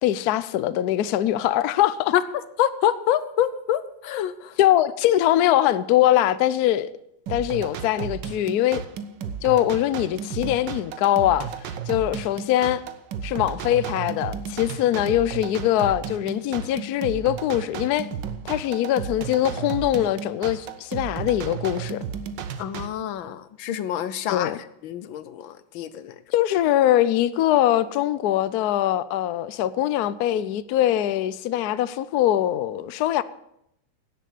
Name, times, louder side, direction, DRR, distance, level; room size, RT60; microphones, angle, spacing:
voice 1, 0.0-2.1 4.6-6.9 7.3-8.8 9.4-11.5 11.9-12.8 13.2-18.1 18.4-22.0 24.3-24.6 26.3-33.2, left 12 dB, 70° left, 1.0 m, -22 dB
voice 2, 2.6-4.6 22.6-24.5 24.8-26.2, left 11 dB, 85° left, 1.5 m, -26 dB
sound 1, 7.3-22.9, right 7 dB, 70° right, 1.5 m, -34 dB
17.0 x 7.6 x 6.6 m
omnidirectional pair, 2.1 m